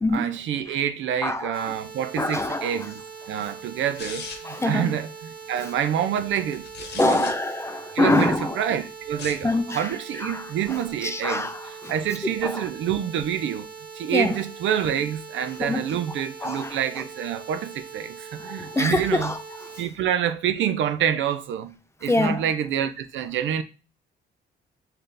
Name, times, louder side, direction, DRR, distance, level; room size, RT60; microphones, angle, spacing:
voice 1, 0.1-3.0 3.3-6.7 6.9-7.3 7.9-11.5 11.9-13.7 13.9-19.3 19.8-21.7 22.0-23.6, right 9 dB, 75° right, 0.5 m, -27 dB
voice 2, 1.2-1.7 2.2-2.9 3.4-3.5 4.4-5.0 5.6-5.7 7.0-8.8 9.4-12.2 12.4-12.7 14.1-14.4 15.6-17.0 18.4-19.8 22.0-22.5, left 2 dB, 15° left, 0.5 m, -26 dB
sound 1, 1.5-19.8, right 6 dB, 50° right, 1.0 m, -42 dB
sound 2, 4.0-4.6 6.5-7.3 9.1-9.5, left 5 dB, 60° left, 1.0 m, -37 dB
3.9 x 2.7 x 3.3 m
cardioid pair, 90°, 20 cm